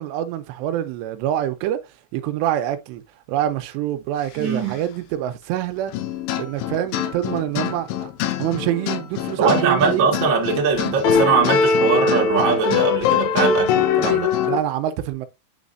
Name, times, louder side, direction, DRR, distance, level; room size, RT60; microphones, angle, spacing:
voice 1, 0.0-1.8 2.1-3.0 3.3-5.9 6.4-8.1 8.4-10.2 14.5-15.3, right 12 dB, 90° right, 2.9 m, -25 dB
voice 2, 4.4-4.8 9.4-14.3, right 5 dB, 65° right, 1.2 m, -21 dB
sound 1, 5.9-14.6, left 6 dB, 85° left, 2.8 m, -22 dB
9.2 x 4.2 x 2.5 m
omnidirectional pair, 4.8 m